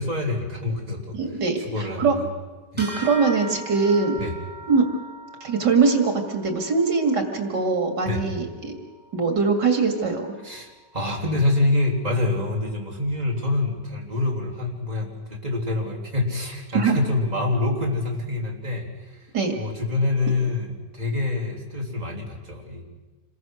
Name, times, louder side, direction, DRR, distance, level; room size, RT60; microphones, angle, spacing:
voice 1, 0.0-1.2 1.6-2.3 2.7-2.8 4.2-4.3 8.0-8.3 10.4-19.3 19.5-22.8, left 2 dB, 25° right, -2 dB, 3.6 m, -26 dB
voice 2, 1.1-2.1 2.8-4.2 4.7-5.0 5.4-8.7 9.1-10.3 16.7-17.0 19.3-19.5, right 4 dB, 80° right, 4 dB, 2.8 m, -22 dB
sound 1, 2.8-12.6, right 1 dB, 5° right, 5.6 m, -42 dB
27.5 x 21.5 x 6.3 m, 1.3 s
omnidirectional pair, 1.8 m